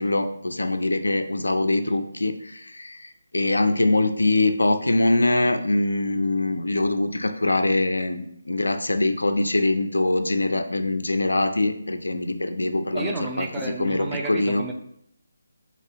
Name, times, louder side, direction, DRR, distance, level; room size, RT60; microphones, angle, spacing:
voice 1, 0.0-13.5 13.8-14.6, left 2 dB, 85° left, 7 dB, 0.4 m, -23 dB
voice 2, 12.9-14.7, right 3 dB, 10° right, 1 dB, 0.3 m, -31 dB
4.0 x 2.9 x 2.8 m, 0.70 s
figure-of-eight pair, 155°, 0 cm